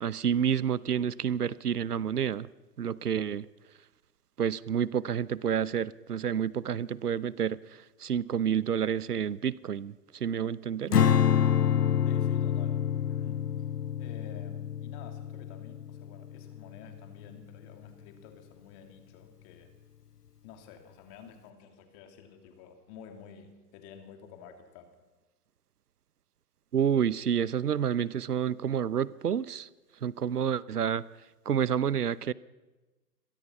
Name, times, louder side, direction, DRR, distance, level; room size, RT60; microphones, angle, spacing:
voice 1, 0.0-2.5 2.8-3.5 4.4-11.0 26.7-29.7 30.0-31.1 31.5-32.3, right 8 dB, 70° right, 20 dB, 0.9 m, -29 dB
Strum, 10.9-17.3, left 9 dB, 70° left, 1.0 m, -27 dB
voice 2, 12.0-13.6 14.0-19.7 20.4-24.9, left 7 dB, 30° left, 5 dB, 3.2 m, -51 dB
28.0 x 22.5 x 5.7 m, 1.2 s
figure-of-eight pair, 125°, 48 cm